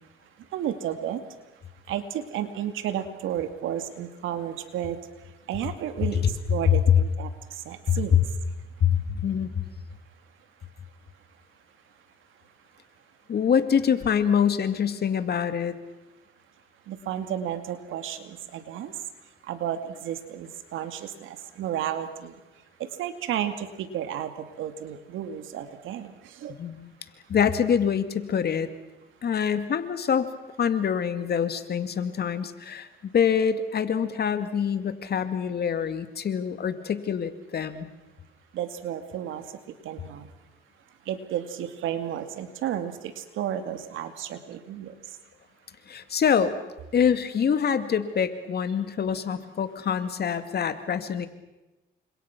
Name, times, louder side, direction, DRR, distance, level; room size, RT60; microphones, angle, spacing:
voice 1, 0.5-1.2 1.9-5.0 5.5-8.1 16.9-19.0 19.4-22.4 22.8-26.5 38.5-39.5 39.8-40.3 41.1-44.9, right 10 dB, 85° right, 9 dB, 2.5 m, -32 dB
voice 2, 7.9-8.2 8.8-9.6 13.3-15.7 26.6-26.9 27.3-28.7 29.2-30.3 30.6-37.9 45.9-46.6 46.9-51.3, left 7 dB, 55° left, 10 dB, 2.3 m, -25 dB
30.0 x 26.0 x 6.1 m, 1.0 s
cardioid pair, 90°, 20 cm